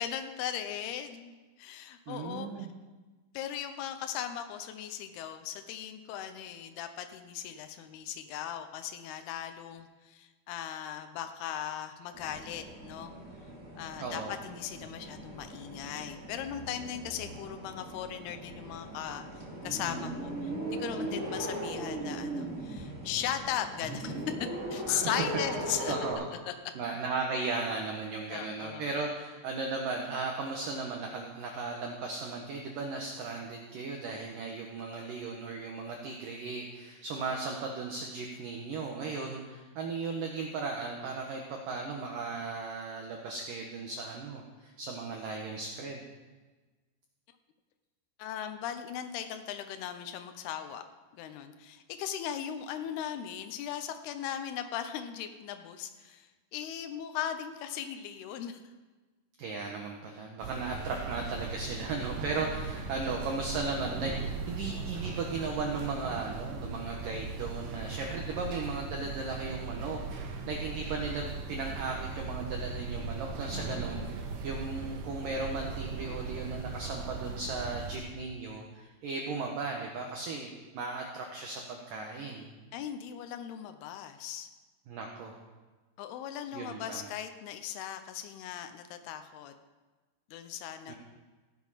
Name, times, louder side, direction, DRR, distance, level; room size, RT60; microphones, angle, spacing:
voice 1, 0.0-2.7 3.3-13.1 13.8-19.3 19.6-20.5 20.8-24.1 24.7-26.0 26.5-26.6 28.3-28.9 48.2-50.8 51.1-58.6 82.7-84.5 86.0-89.5 90.3-90.9, left 10 dB, 85° left, 8 dB, 2.2 m, -38 dB
voice 2, 2.1-2.7 14.0-14.3 24.9-25.0 25.9-26.3 26.8-46.0 59.4-82.5 84.9-85.3 86.5-87.1 90.9-91.0, right 4 dB, 90° right, 1 dB, 1.9 m, -36 dB
sound 1, 12.1-26.1, right 1 dB, 30° right, 1.4 m, -39 dB
sound 2, 60.4-78.0, right 4 dB, 70° right, 3.4 m, -38 dB
16.0 x 9.6 x 5.6 m, 1.3 s
omnidirectional pair, 5.7 m